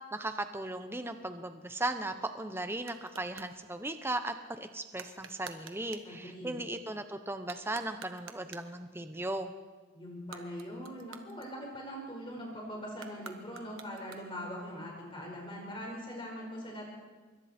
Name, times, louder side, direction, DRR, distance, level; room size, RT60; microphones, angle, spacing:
voice 1, 0.1-9.5, right 2 dB, 10° right, 8 dB, 0.9 m, -37 dB
sound 1, 2.3-3.6 4.9-6.2 7.4-8.8 10.1-12.0 12.9-14.5, right 6 dB, 70° right, 1.5 m, -50 dB
voice 2, 6.0-6.6 9.9-16.9, equal, 25° left, -1 dB, 4.9 m, -42 dB
26.5 x 23.5 x 4.4 m, 1.3 s
head